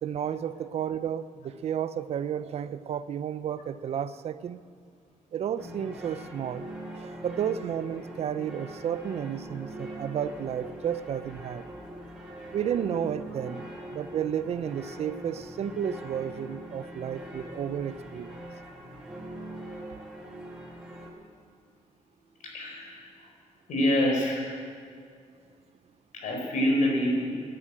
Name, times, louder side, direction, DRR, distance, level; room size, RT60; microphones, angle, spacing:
voice 1, 0.0-4.6 5.3-6.7 6.9-11.6 12.5-13.7 13.9-18.4, right 9 dB, 55° right, 14 dB, 0.5 m, -32 dB
sound 1, 5.6-21.1, right 1 dB, 5° right, 1.9 m, -42 dB
voice 2, 22.4-23.1 23.7-24.5 26.1-27.4, equal, 85° left, -1 dB, 4.4 m, -26 dB
12.0 x 10.0 x 8.9 m, 2.3 s
wide cardioid pair, 175°, 13 cm